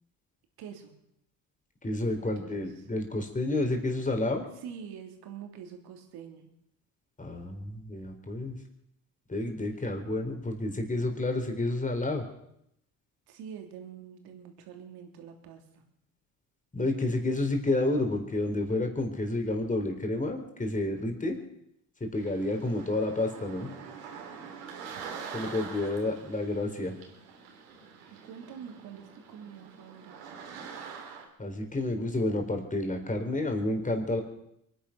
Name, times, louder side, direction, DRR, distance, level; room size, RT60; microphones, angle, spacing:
voice 1, 0.6-0.9 2.2-2.9 4.6-6.5 9.6-9.7 13.3-15.8 28.2-30.4, right 7 dB, 70° right, 4 dB, 3.2 m, -46 dB
voice 2, 1.8-4.5 7.2-8.6 9.3-12.2 16.7-21.4 22.0-23.7 25.3-27.0 31.4-34.2, left 2 dB, 20° left, 4 dB, 4.2 m, -30 dB
sound 1, 22.2-31.3, right 6 dB, 90° right, 3.2 m, -45 dB
23.0 x 10.5 x 6.0 m, 0.77 s
supercardioid pair, 75°, 39 cm